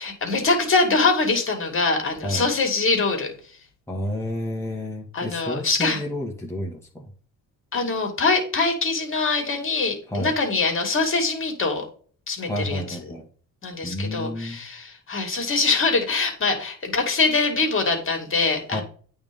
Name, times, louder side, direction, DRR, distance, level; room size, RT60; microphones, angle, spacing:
voice 1, 0.0-3.3 5.1-6.0 7.7-11.8 12.3-13.0 13.6-18.8, left 3 dB, 40° left, 3 dB, 2.5 m, -23 dB
voice 2, 3.9-7.1 10.1-10.3 12.4-13.2 13.8-14.6 18.7-18.8, left 1 dB, 10° left, -2 dB, 1.6 m, -30 dB
8.9 x 3.6 x 5.3 m, 0.43 s
cardioid pair, 85°, 33 cm